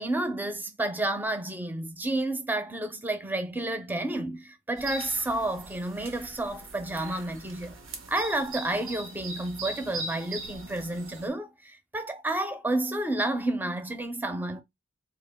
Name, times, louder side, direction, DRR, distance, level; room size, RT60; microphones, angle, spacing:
voice 1, 0.0-7.8 8.1-14.6, right 1 dB, 10° right, 0.5 m, -30 dB
sound 1, 4.8-11.3, right 2 dB, 90° right, 0.8 m, -40 dB
3.6 x 2.4 x 3.4 m
head